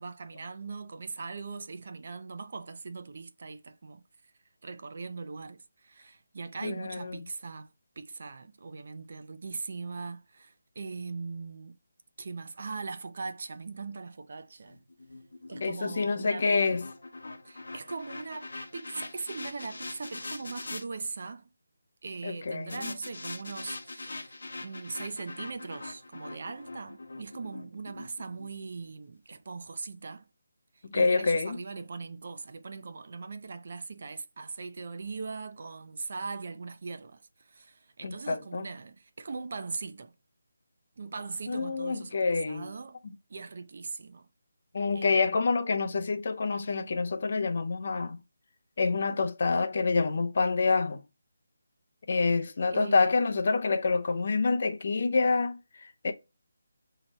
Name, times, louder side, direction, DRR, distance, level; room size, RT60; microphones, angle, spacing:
voice 1, 0.0-4.0 4.6-7.7 8.0-11.8 12.2-14.8 15.5-16.5 17.4-21.5 22.0-30.3 30.7-40.1 41.0-43.0 43.3-44.3 44.9-45.2 52.7-53.1, right 4 dB, 50° right, 0.5 m, -40 dB
voice 2, 6.6-7.1 15.6-16.8 22.2-22.9 30.8-31.6 38.0-38.7 41.5-42.7 43.0-43.1 44.7-48.2 48.8-51.0 52.1-56.1, left 4 dB, 45° left, 0.5 m, -27 dB
sound 1, 14.6-20.8 22.7-28.9, left 2 dB, 70° left, 0.8 m, -43 dB
6.4 x 2.8 x 2.9 m
figure-of-eight pair, 170°, 0 cm